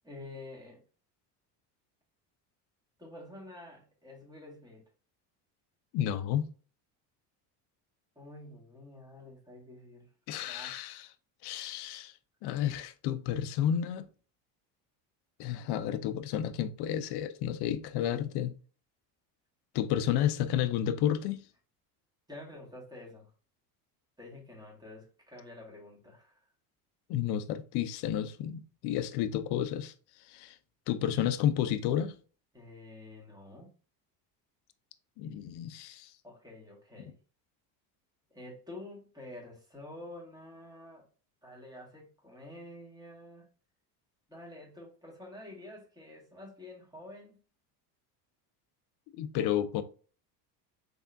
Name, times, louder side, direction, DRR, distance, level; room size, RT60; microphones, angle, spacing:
voice 1, 0.0-0.8 3.0-4.8 8.2-10.1 10.4-10.8 22.3-23.3 24.2-26.5 32.5-33.7 36.2-37.2 38.3-41.0 41.4-43.5 44.3-47.4 49.3-49.6, left 2 dB, 10° right, 1.9 m, -48 dB
voice 2, 5.9-6.5 10.3-11.1 11.4-14.1 15.4-18.5 19.7-21.4 27.1-29.9 30.2-30.6 30.9-32.1 35.2-36.1 49.1-49.8, left 10 dB, 55° left, 0.6 m, -31 dB
3.5 x 3.5 x 2.6 m
supercardioid pair, 95°, 47 cm